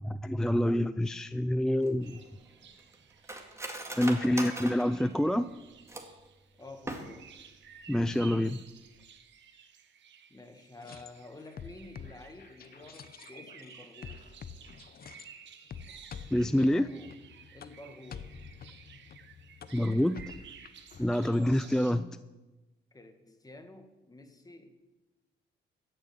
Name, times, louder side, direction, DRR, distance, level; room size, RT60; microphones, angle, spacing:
voice 1, 0.0-2.2 4.0-5.5 7.9-8.6 16.3-16.9 19.7-20.3 21.0-22.2, left 1 dB, 5° left, 12 dB, 0.4 m, -27 dB
Cutlery silverware, 1.8-6.3 6.7-7.4 7.8-7.9 8.2-8.5 8.9-9.1, right 1 dB, 15° right, 2.2 m, -41 dB
sound 1, 2.0-21.9, right 8 dB, 65° right, 1.3 m, -54 dB
voice 2, 3.9-4.7 6.6-7.3 10.3-14.3 16.5-17.2 17.5-18.4 21.2-21.7 22.9-24.7, left 2 dB, 20° left, 6 dB, 1.9 m, -50 dB
sound 2, 10.8-15.3 15.7-21.1, left 7 dB, 50° left, 0.9 m, -48 dB
14.0 x 6.6 x 8.9 m, 1.1 s
cardioid pair, 90°, 20 cm